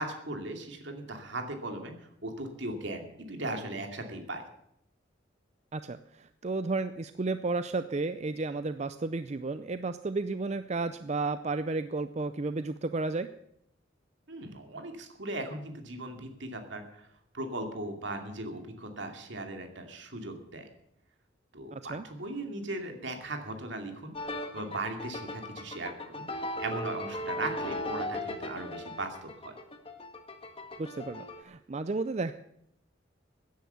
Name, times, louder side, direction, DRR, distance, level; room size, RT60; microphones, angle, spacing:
voice 1, 0.0-4.4 14.3-17.1 17.3-20.7 21.5-29.5, right 2 dB, 70° right, 5 dB, 2.6 m, -38 dB
voice 2, 5.7-13.3 21.7-22.0 30.8-32.3, right 3 dB, 35° right, 12 dB, 0.5 m, -33 dB
sound 1, 24.1-31.4, left 1 dB, 30° left, 1.5 m, -37 dB
16.0 x 10.5 x 7.0 m, 0.76 s
head